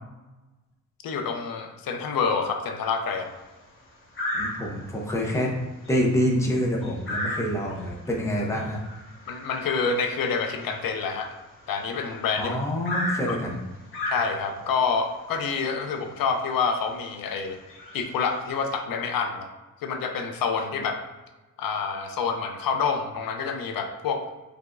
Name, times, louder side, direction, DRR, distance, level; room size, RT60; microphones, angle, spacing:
voice 1, 1.0-3.3 9.3-11.4 11.7-12.6 13.3-13.4 14.1-17.6 17.9-19.5 19.8-21.1 21.6-24.2, left 5 dB, 90° left, 5 dB, 0.6 m, -27 dB
sound 1, 3.0-3.4 4.1-5.0 5.4-5.6 5.8-12.1 12.8-14.7 15.7-15.8 16.2-16.4 16.9-17.1 17.6-18.7, left 1 dB, 40° left, 1.0 m, -35 dB
voice 2, 4.3-8.8 12.3-13.6, equal, 10° left, -2 dB, 0.6 m, -27 dB
4.9 x 3.4 x 2.5 m, 1.1 s
wide cardioid pair, 180°, 34 cm